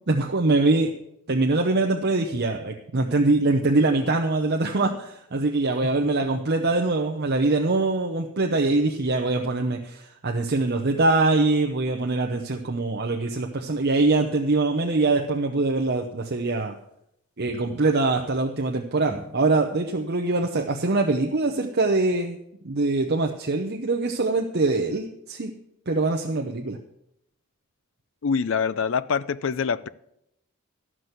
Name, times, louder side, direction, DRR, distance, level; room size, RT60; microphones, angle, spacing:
voice 1, 0.1-0.9 1.3-16.8 17.4-22.4 22.6-25.5 25.9-26.8, right 2 dB, 50° right, 0.8 m, -23 dB
sound 1, 16.4-16.9 17.7-18.5 19.1-19.6 19.9-20.1 20.4-20.8, left 1 dB, 75° left, 4.2 m, -48 dB
voice 2, 28.2-29.9, left 6 dB, 60° left, 0.4 m, -25 dB
12.5 x 6.2 x 8.0 m
head